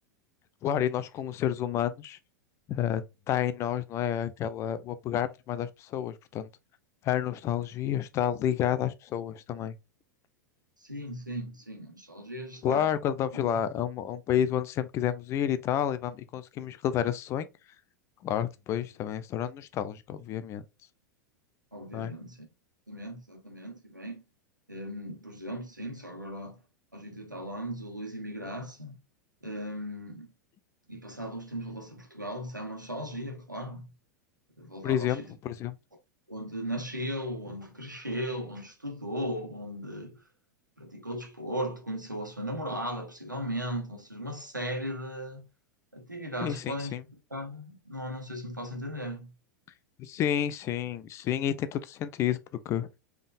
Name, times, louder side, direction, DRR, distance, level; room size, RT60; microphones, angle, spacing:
voice 1, 0.6-2.2 2.7-6.5 7.0-9.7 12.6-17.5 18.2-20.6 21.9-22.1 34.8-35.8 46.4-47.0 50.0-52.4 52.7-52.9, left 10 dB, 30° left, 0.5 m, -30 dB
voice 2, 10.8-12.9 13.3-13.5 21.7-22.5 22.9-24.2 24.7-26.6 26.9-29.0 29.4-30.3 30.9-33.9 34.6-35.3 36.3-40.2 40.8-45.5 45.9-46.9 47.3-49.3, equal, 90° right, 1.3 m, -37 dB
5.2 x 3.6 x 2.5 m
figure-of-eight pair, 90°, 10 cm